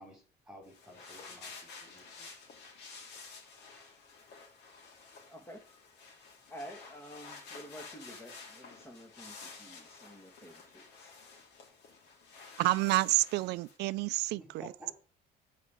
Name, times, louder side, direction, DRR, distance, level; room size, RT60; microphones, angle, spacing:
voice 1, 0.0-1.5 1.9-2.3 14.3-14.9, equal, 5° right, 4.9 m, -52 dB
sound 1, 0.6-13.8, left 4 dB, 80° left, 2.9 m, -51 dB
voice 2, 5.3-5.6 6.5-11.2, equal, 15° left, 1.8 m, -50 dB
voice 3, 12.6-14.4, right 18 dB, 80° right, 0.5 m, -28 dB
8.2 x 5.0 x 7.2 m
cardioid pair, 110°, 17 cm